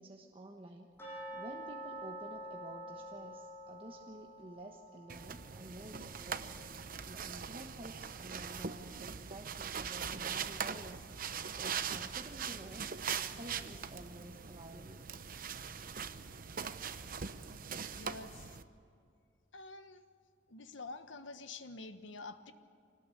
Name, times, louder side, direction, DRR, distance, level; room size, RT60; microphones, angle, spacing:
voice 1, 0.0-6.6 7.0-12.9 13.3-15.1, right 1 dB, 30° right, 1 dB, 1.3 m, -51 dB
sound 1, 1.0-7.8 8.1-8.2 8.7-8.8 9.4-9.5, right 1 dB, 10° left, 7.5 m, -48 dB
sound 2, 5.1-18.6, right 6 dB, 50° right, 0.9 m, -41 dB
voice 2, 17.9-18.6 19.5-20.0 20.5-22.5, left 3 dB, 80° left, 9 dB, 1.3 m, -48 dB
25.0 x 19.0 x 8.4 m, 2.3 s
head